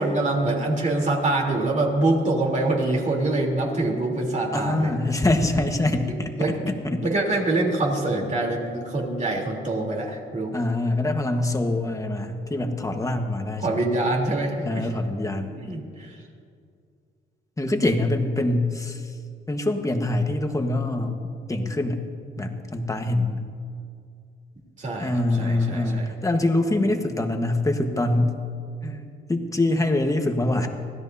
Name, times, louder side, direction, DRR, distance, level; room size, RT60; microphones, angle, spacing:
voice 1, 0.0-4.9 6.4-6.6 7.0-10.6 13.6-14.9 15.5-16.1 24.8-26.1, right 2 dB, 40° right, -1 dB, 3.5 m, -25 dB
voice 2, 4.5-7.0 10.5-13.8 14.6-15.6 17.6-19.1 19.5-21.2 21.5-22.0 22.4-23.5 25.0-28.4 28.8-30.7, left 2 dB, 15° left, 5 dB, 1.4 m, -24 dB
24.5 x 16.0 x 2.8 m, 2.3 s
cardioid pair, 90°, 20 cm